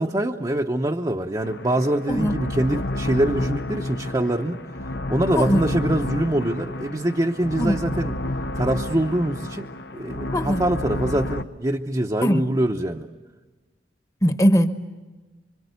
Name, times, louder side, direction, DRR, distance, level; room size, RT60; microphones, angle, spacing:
voice 1, 0.0-4.6 5.1-8.1 8.5-9.7 9.9-13.1, right 1 dB, 25° right, 1 dB, 0.8 m, -24 dB
sound 1, 1.4-11.4, left 1 dB, 70° left, 0.8 m, -30 dB
voice 2, 2.1-2.4 5.3-5.7 7.6-7.8 10.3-10.6 12.2-12.4 14.2-14.7, equal, 20° left, 8 dB, 1.1 m, -20 dB
26.5 x 25.0 x 8.1 m, 1.3 s
head